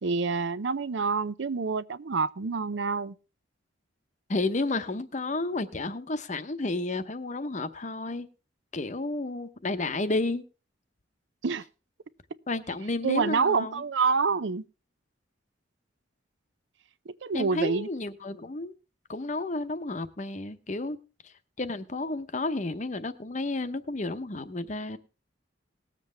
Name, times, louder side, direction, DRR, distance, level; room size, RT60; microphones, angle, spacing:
voice 1, 0.0-3.1 11.4-11.6 13.0-14.6 17.1-17.9, right 5 dB, 65° right, 0.6 m, -27 dB
voice 2, 4.3-8.3 8.7-10.4 12.5-13.8 17.3-18.8 19.1-21.0 21.2-25.0, left 2 dB, 40° left, 0.8 m, -31 dB
19.0 x 7.6 x 3.3 m
head